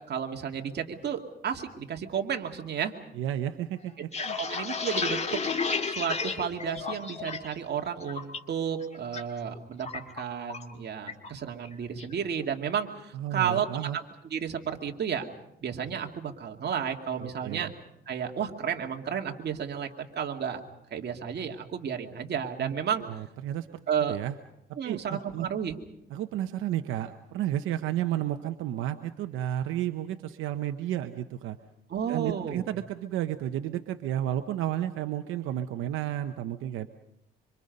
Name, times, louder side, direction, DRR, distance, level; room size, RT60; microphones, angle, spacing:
voice 1, 0.1-2.9 4.4-5.2 5.9-9.9 10.1-14.0 14.3-15.3 15.6-17.7 18.1-19.9 20.2-20.6 20.9-23.0 23.9-24.2 24.8-25.8 31.9-32.6, right 8 dB, 55° right, 3 dB, 2.4 m, -32 dB
voice 2, 3.1-4.4 13.1-14.0 17.2-17.7 22.6-23.7 24.1-24.4 24.8-25.5 26.1-31.6 32.1-36.9, right 12 dB, 90° right, 8 dB, 0.9 m, -32 dB
sound 1, 3.9-7.5 7.9-8.4 8.8-9.2 9.5-10.7 11.1-11.3 11.6-12.1, left 4 dB, 35° left, 2.1 m, -32 dB
26.0 x 25.5 x 5.4 m, 0.82 s
cardioid pair, 90°, 20 cm